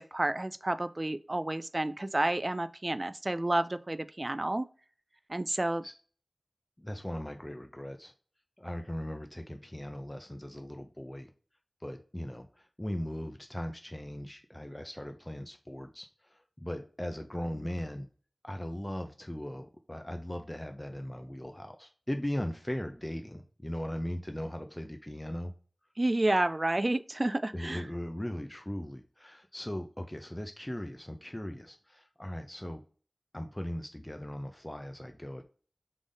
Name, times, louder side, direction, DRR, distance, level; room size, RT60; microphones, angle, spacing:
voice 1, 0.0-4.7 5.3-5.9 26.0-27.8, right 1 dB, 40° right, 0.3 m, -30 dB
voice 2, 5.5-5.9 6.8-8.1 8.6-11.3 11.8-18.1 18.4-25.5 27.5-32.8 33.3-35.4, left 1 dB, 20° left, 0.5 m, -39 dB
3.7 x 3.5 x 3.8 m
wide cardioid pair, 45°, 0 cm